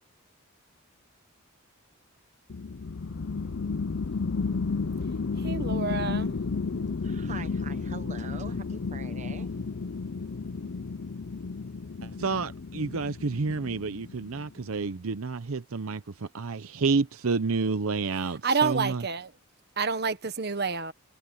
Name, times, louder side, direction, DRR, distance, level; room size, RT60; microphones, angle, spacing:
sound 1, 2.5-14.6, left 4 dB, 55° left, 0.6 m, -32 dB
voice 1, 5.4-6.3 18.4-19.3 19.8-20.9, right 5 dB, 50° right, 1.4 m, -28 dB
voice 2, 6.8-9.5, right 4 dB, 35° right, 1.0 m, -44 dB
voice 3, 12.0-19.0, right 4 dB, 75° right, 0.7 m, -29 dB
head